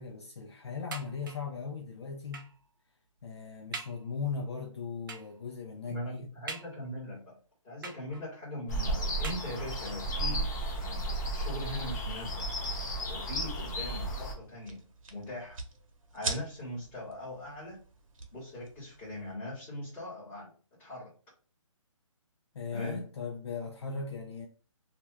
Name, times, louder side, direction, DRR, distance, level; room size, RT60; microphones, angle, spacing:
voice 1, 0.0-2.5 3.2-6.3 22.5-24.5, left 5 dB, 55° left, 0.5 m, -38 dB
sound 1, 0.9-1.6 2.3-2.7 3.2-3.3 3.7-4.1 5.1-5.4 6.5-7.1 7.8-8.4 9.2-9.9 10.7-10.8 11.2-11.3, right 4 dB, 40° right, 0.4 m, -44 dB
voice 2, 5.9-7.4 7.6-10.5 10.8-12.5 13.1-15.6 16.1-17.8 18.3-20.5 20.8-21.1 22.7-23.0, left 1 dB, 10° left, 1.5 m, -41 dB
sound 2, 8.7-14.3, right 1 dB, 30° left, 0.9 m, -33 dB
sound 3, 12.6-19.3, right 3 dB, 80° right, 0.9 m, -44 dB
2.8 x 2.4 x 3.2 m
hypercardioid pair, 165°, 17 cm